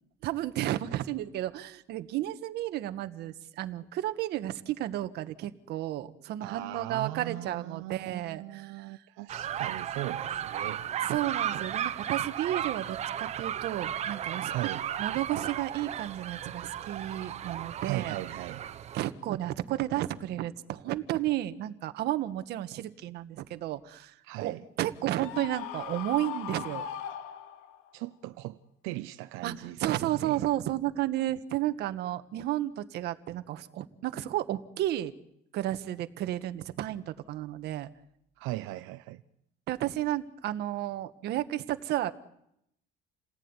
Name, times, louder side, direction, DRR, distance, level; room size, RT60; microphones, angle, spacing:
voice 1, 0.2-9.0 11.0-14.5 15.0-18.2 18.9-26.9 29.4-35.1 35.5-37.9 39.7-42.1, right 14 dB, 55° right, 1.7 m, -32 dB
voice 2, 6.4-10.8 14.5-14.8 17.8-18.6 24.2-24.6 27.9-28.6 28.8-29.8 30.2-30.5 38.4-39.2, right 17 dB, 80° right, 1.0 m, -38 dB
sound 1, 9.3-19.1, right 10 dB, 35° right, 1.0 m, -35 dB
Screaming, 25.2-27.9, left 10 dB, 90° left, 2.4 m, -39 dB
29.5 x 19.5 x 9.9 m
cardioid pair, 170°, 20 cm